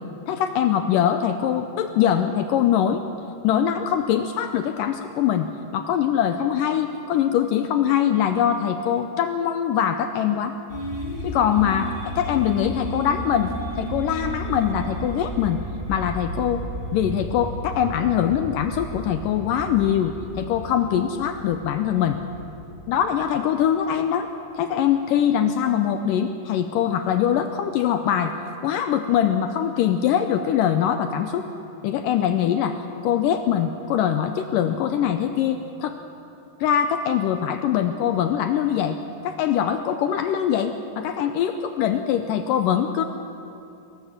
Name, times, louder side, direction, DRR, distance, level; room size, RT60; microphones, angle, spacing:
voice 1, 0.3-3.0 3.4-10.6 11.2-15.6 15.9-16.6 16.9-22.2 22.9-24.3 24.5-28.4 28.6-31.5 31.8-36.0 36.6-39.0 39.2-43.0, left 9 dB, 85° left, 8 dB, 1.9 m, -23 dB
sound 1, 10.7-23.6, equal, 5° right, 4.7 m, -33 dB
22.5 x 18.0 x 7.4 m, 2.7 s
omnidirectional pair, 4.7 m